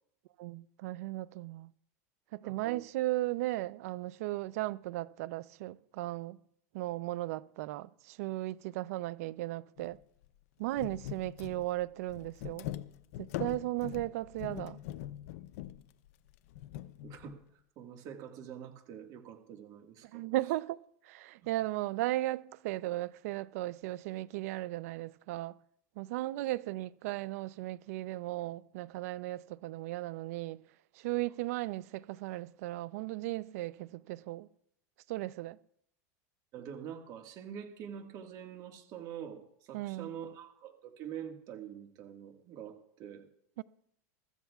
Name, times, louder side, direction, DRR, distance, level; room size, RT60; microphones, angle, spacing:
voice 1, 0.4-1.7 2.3-6.4 6.7-10.0 10.6-12.7 13.2-14.8 20.1-20.8 21.1-25.5 26.0-30.6 31.0-34.5 35.1-35.6 39.7-40.1 43.6-43.7, right 17 dB, 70° right, 0.5 m, -36 dB
voice 2, 2.4-2.8 17.0-17.4 17.8-20.2 26.4-26.5 36.5-43.3, right 9 dB, 45° right, 1.8 m, -45 dB
sound 1, 9.8-10.0 10.2-10.3 10.7-17.4, left 13 dB, 70° left, 0.6 m, -43 dB
24.0 x 13.5 x 2.4 m
supercardioid pair, 130°, 8 cm